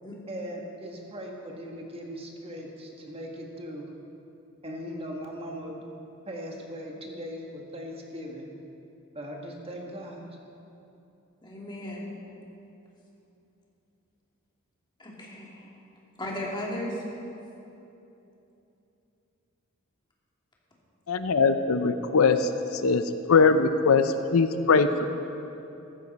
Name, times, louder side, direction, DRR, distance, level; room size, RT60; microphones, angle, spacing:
voice 1, 0.3-3.9 4.6-5.8 6.2-8.5 9.1-10.4, equal, 30° right, 0 dB, 1.5 m, -39 dB
voice 2, 11.4-12.1 15.0-15.7 16.2-17.0, left 1 dB, 20° left, -4 dB, 2.6 m, -35 dB
voice 3, 21.1-22.5 22.8-23.0 23.3-25.0, left 4 dB, 85° left, 10 dB, 0.6 m, -21 dB
14.5 x 13.5 x 4.1 m, 2.9 s
head